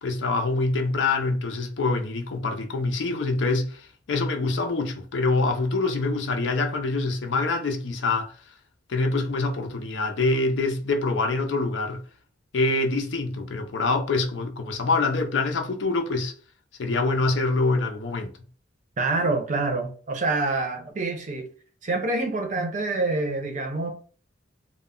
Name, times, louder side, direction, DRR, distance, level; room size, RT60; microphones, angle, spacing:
voice 1, 0.0-8.3 8.9-12.0 12.5-16.3 16.8-18.3, left 3 dB, 75° left, 0.5 m, -25 dB
voice 2, 19.0-21.5 21.8-23.9, right 3 dB, 45° right, 0.5 m, -26 dB
2.2 x 2.0 x 3.6 m
head